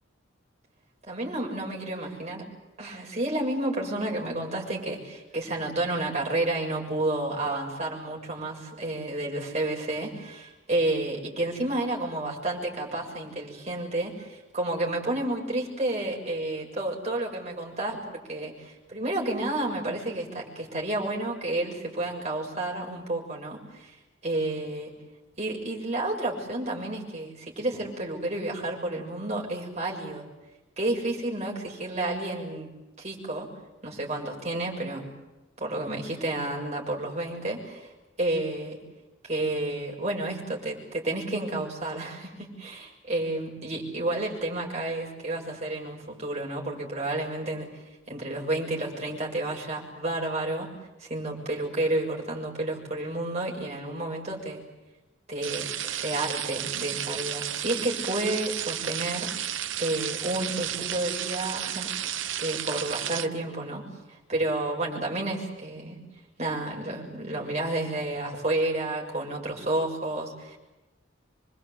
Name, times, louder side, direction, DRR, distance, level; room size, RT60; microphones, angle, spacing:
voice 1, 1.1-2.4 2.8-23.9 24.2-24.9 25.4-30.2 30.8-32.7 33.0-33.5 33.8-35.1 35.6-37.9 38.2-38.8 39.2-47.7 48.1-50.7 51.0-54.6 55.3-63.8 64.1-66.0 66.4-70.6, right 2 dB, 35° right, -1 dB, 6.9 m, -31 dB
sound 1, 55.4-63.3, right 11 dB, 80° right, 1.0 m, -33 dB
27.0 x 23.5 x 8.5 m, 1.1 s
head